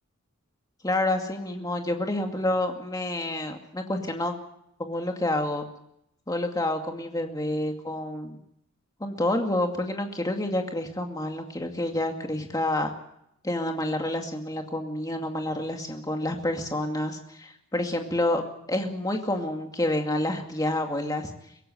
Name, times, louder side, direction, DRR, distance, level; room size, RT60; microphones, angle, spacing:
voice 1, 0.8-4.3 4.8-5.6 6.3-8.4 9.0-12.9 13.4-18.4 18.7-21.3, left 1 dB, 15° left, 3 dB, 2.3 m, -28 dB
23.5 x 17.0 x 7.9 m, 0.77 s
head